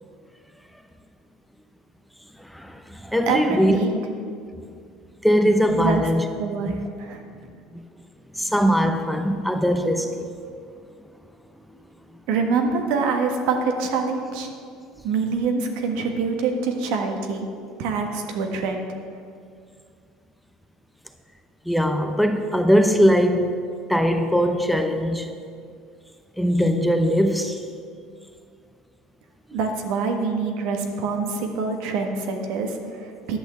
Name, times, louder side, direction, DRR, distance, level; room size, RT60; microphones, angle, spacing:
voice 1, 2.4-3.8 5.2-6.2 6.7-6.8 7.7-7.8 8.3-10.3 21.7-23.5 23.9-25.3 26.3-27.6 29.5-29.6, equal, ahead, 6 dB, 0.8 m, -21 dB
voice 2, 3.3-3.9 5.8-6.0 6.4-7.2 12.3-14.5 15.0-17.5 17.8-18.9 29.5-33.4, right 4 dB, 75° right, 4 dB, 1.5 m, -25 dB
11.0 x 6.1 x 8.2 m, 2.2 s
supercardioid pair, 110°, 0 cm